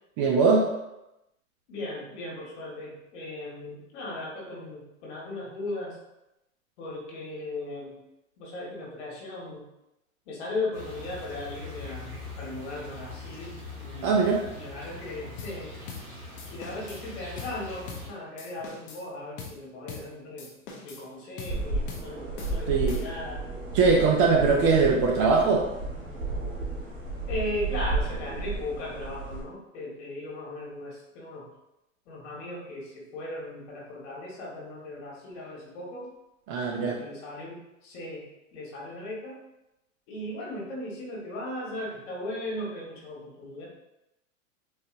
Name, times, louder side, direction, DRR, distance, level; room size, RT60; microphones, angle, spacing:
voice 1, 0.2-0.7 14.0-14.4 22.7-23.0 23.7-25.6 36.5-37.0, right 4 dB, 30° right, 0 dB, 0.4 m, -21 dB
voice 2, 1.7-6.0 6.8-8.0 8.4-9.7 10.3-14.2 14.5-15.7 16.5-20.5 20.8-23.4 27.3-31.5 32.1-36.1 36.8-38.2 38.5-39.4 40.1-43.7, left 1 dB, 60° left, -3 dB, 1.4 m, -37 dB
sound 1, 10.7-18.1, left 3 dB, 5° right, 1.2 m, -42 dB
sound 2, 15.4-15.6 15.9-16.1 16.4-17.0 17.4-17.6 17.9-18.1 18.4-19.0 19.4-19.6 19.9-20.1 20.4-21.1 21.4-21.6 21.9-22.1 22.4-23.3, left 5 dB, 30° left, 0.6 m, -42 dB
sound 3, 21.5-29.4, right 3 dB, 85° right, 1.4 m, -33 dB
4.0 x 2.7 x 2.5 m, 0.91 s
hypercardioid pair, 115°, 41 cm